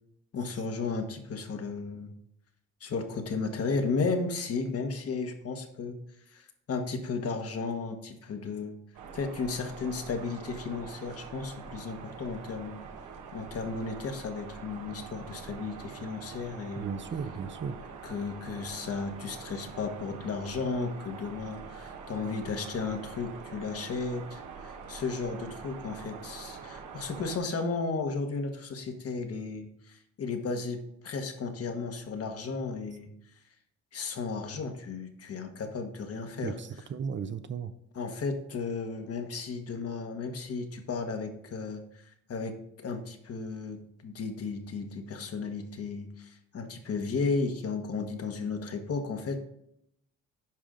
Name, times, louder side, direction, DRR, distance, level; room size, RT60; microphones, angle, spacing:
voice 1, 0.3-2.1 2.8-6.0 6.3-8.7 9.1-12.8 13.3-16.9 18.0-33.1 33.9-36.6 37.9-49.4, left 4 dB, 50° left, 5 dB, 1.3 m, -34 dB
sound 1, 8.9-27.4, right 5 dB, 80° right, 1.2 m, -45 dB
voice 2, 16.8-17.8 36.4-37.7, right 6 dB, 40° right, 11 dB, 0.6 m, -35 dB
10.5 x 5.0 x 3.8 m, 0.75 s
cardioid pair, 90°, 30 cm